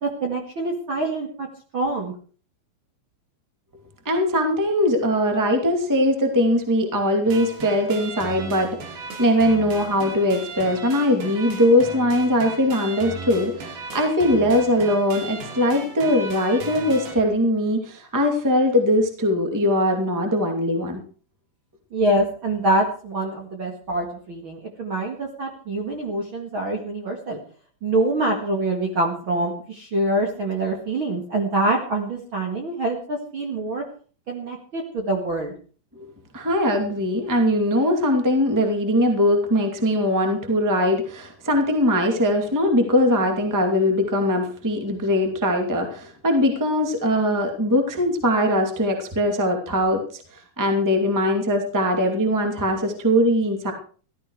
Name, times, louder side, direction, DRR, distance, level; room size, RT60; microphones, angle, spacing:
voice 1, 0.0-1.5 1.7-2.1 21.9-27.4 27.8-33.8 34.3-35.5, right 2 dB, 40° right, 1 dB, 2.1 m, -25 dB
voice 2, 4.0-21.0 35.9-50.2 50.6-53.7, left 1 dB, 5° right, 4 dB, 1.7 m, -21 dB
sound 1, 7.2-17.2, right 3 dB, 85° right, 4.6 m, -36 dB
15.0 x 13.0 x 4.8 m, 0.41 s
omnidirectional pair, 4.3 m